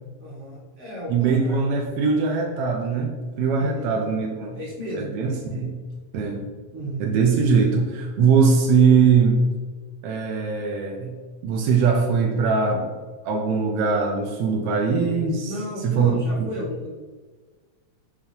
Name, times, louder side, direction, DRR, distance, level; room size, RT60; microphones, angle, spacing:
voice 1, 0.2-1.7 3.6-4.0 4.5-5.1 6.7-7.2 15.5-16.9, equal, 50° right, -6 dB, 2.8 m, -33 dB
voice 2, 1.1-4.6 4.9-5.7 6.1-6.4 7.0-9.4 10.0-11.2 11.4-12.9 13.2-15.5 15.8-16.5, right 5 dB, 75° right, 1 dB, 1.4 m, -21 dB
7.1 x 4.8 x 2.9 m, 1.4 s
omnidirectional pair, 3.4 m